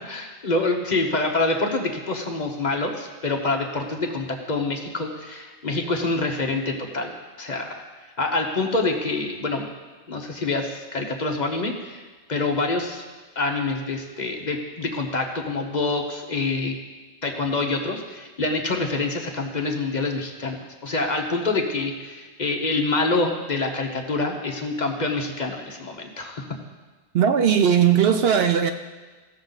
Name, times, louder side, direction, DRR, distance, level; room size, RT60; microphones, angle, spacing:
voice 1, 0.1-7.8 8.2-9.7 10.1-12.0 12.3-13.0 13.4-16.7 17.2-26.5, left 3 dB, 40° left, 1.0 m, -26 dB
voice 2, 27.1-28.7, right 8 dB, 65° right, 0.7 m, -18 dB
15.5 x 6.6 x 4.0 m
omnidirectional pair, 1.2 m